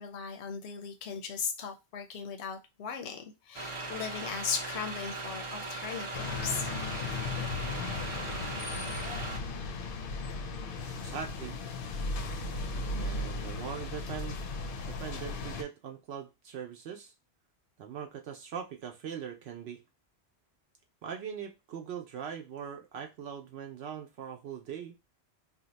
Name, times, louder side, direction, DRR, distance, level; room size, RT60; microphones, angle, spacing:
voice 1, 0.0-6.7, left 6 dB, 85° left, 0.9 m, -37 dB
sound 1, 3.5-9.4, right 2 dB, 40° right, 0.5 m, -39 dB
sound 2, 6.1-15.6, left 3 dB, 60° left, 0.7 m, -36 dB
voice 2, 11.0-11.6 13.0-14.4 14.9-17.1 17.8-19.8 21.0-25.0, right 8 dB, 75° right, 0.8 m, -41 dB
2.7 x 2.1 x 3.9 m
omnidirectional pair, 1.1 m